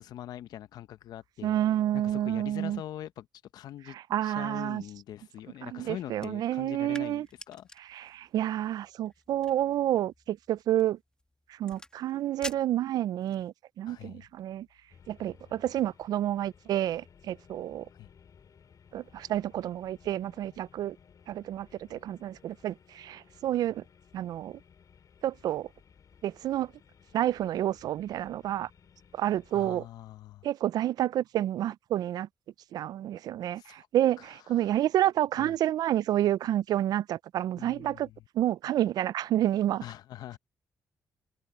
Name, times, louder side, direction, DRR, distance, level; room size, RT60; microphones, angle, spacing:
voice 1, 0.0-1.6 1.9-3.3 3.5-4.0 4.2-7.7 13.9-14.3 17.9-18.1 29.5-30.5 33.6-33.9 34.2-34.8 35.4-35.5 37.6-38.2 39.8-40.4, left 12 dB, 80° left, 1.0 m, -43 dB
voice 2, 1.4-2.8 3.9-4.8 5.6-7.3 7.9-11.0 11.5-14.7 15.1-17.9 18.9-21.0 21.3-23.8 24.1-24.6 25.2-25.7 26.2-26.7 27.1-28.7 29.1-29.8 30.4-32.3 32.7-38.1 38.3-39.8, right 12 dB, 80° right, 0.4 m, -29 dB
sound 1, 6.1-13.5, left 1 dB, 10° left, 2.8 m, -49 dB
sound 2, 14.9-29.7, left 7 dB, 60° left, 3.0 m, -58 dB
supercardioid pair, 55°, 7 cm